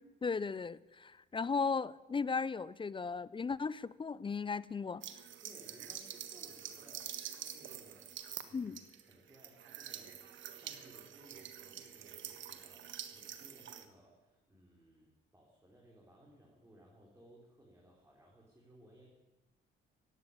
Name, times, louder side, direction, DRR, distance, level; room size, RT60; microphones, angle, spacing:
voice 1, 0.2-5.0 8.5-8.8, left 5 dB, 25° left, 20 dB, 0.5 m, -36 dB
sound 1, 5.0-13.8, right 9 dB, 70° right, 1.5 m, -47 dB
voice 2, 5.4-8.1 8.4-8.8 9.1-10.2 10.6-19.1, equal, 15° right, -3 dB, 4.0 m, -61 dB
15.5 x 9.5 x 9.8 m, 1.1 s
cardioid pair, 90°, 20 cm